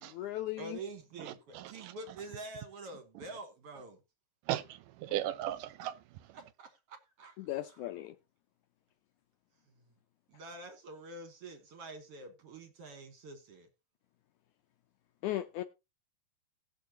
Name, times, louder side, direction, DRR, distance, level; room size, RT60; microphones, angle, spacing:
voice 1, 0.0-0.8 7.4-8.1 15.2-15.6, left 14 dB, 80° left, 1.8 m, -37 dB
voice 2, 0.6-4.0 6.3-7.4 10.3-13.7, right 2 dB, 55° right, 1.9 m, -47 dB
voice 3, 1.3-1.9 4.5-6.0, right 13 dB, 80° right, 2.1 m, -37 dB
18.5 x 6.8 x 2.9 m
omnidirectional pair, 4.0 m